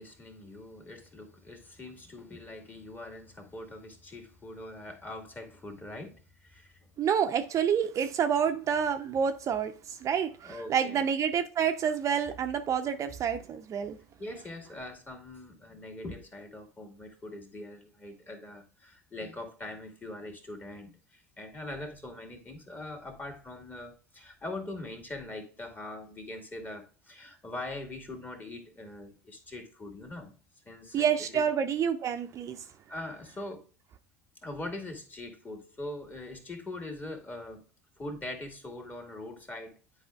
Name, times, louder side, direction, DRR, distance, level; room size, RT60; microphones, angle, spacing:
voice 1, 0.0-6.9 10.4-11.1 14.2-30.3 30.7-31.5 32.9-33.7 34.4-37.6 38.0-39.8, left 2 dB, 20° left, 2.0 m, -42 dB
voice 2, 7.0-14.0 30.9-32.6, right 7 dB, 40° right, 0.6 m, -28 dB
10.0 x 4.9 x 2.3 m
hypercardioid pair, 75°, 8 cm